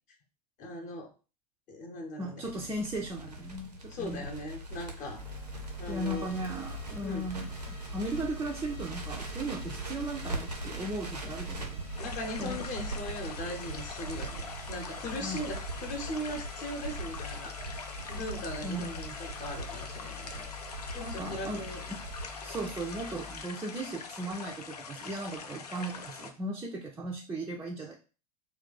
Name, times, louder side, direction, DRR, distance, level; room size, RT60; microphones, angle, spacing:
voice 1, 0.6-1.1 1.7-2.5 3.9-5.2 5.8-6.3 7.0-7.2 12.0-20.5 20.9-21.8, left 1 dB, 40° left, 3 dB, 0.9 m, -39 dB
voice 2, 2.2-4.3 5.9-11.8 12.4-12.7 15.2-15.4 18.6-19.1 21.0-21.6 21.9-22.0 22.4-27.9, right 1 dB, 15° right, -1 dB, 0.4 m, -37 dB
Crackle, 2.4-22.2, right 1 dB, 90° right, 0.8 m, -41 dB
sound 1, 5.2-23.5, left 2 dB, 10° left, 0.8 m, -47 dB
sound 2, 12.0-26.3, left 5 dB, 75° left, 0.5 m, -44 dB
2.4 x 2.3 x 3.9 m, 0.34 s
figure-of-eight pair, 85°, 20 cm